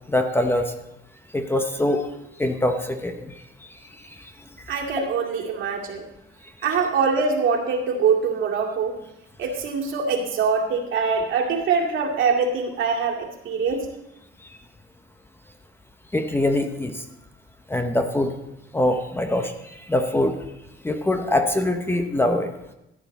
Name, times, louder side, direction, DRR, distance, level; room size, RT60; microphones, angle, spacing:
voice 1, 0.1-0.7 1.3-2.0 2.4-3.3 16.1-17.0 17.7-18.3 18.7-19.5 19.9-20.3 20.8-22.5, left 1 dB, 10° left, 6 dB, 0.7 m, -23 dB
voice 2, 4.7-6.1 6.6-9.0 9.4-13.9, right 5 dB, 70° right, 0 dB, 2.2 m, -23 dB
14.5 x 9.5 x 4.1 m, 0.90 s
cardioid pair, 145°, 21 cm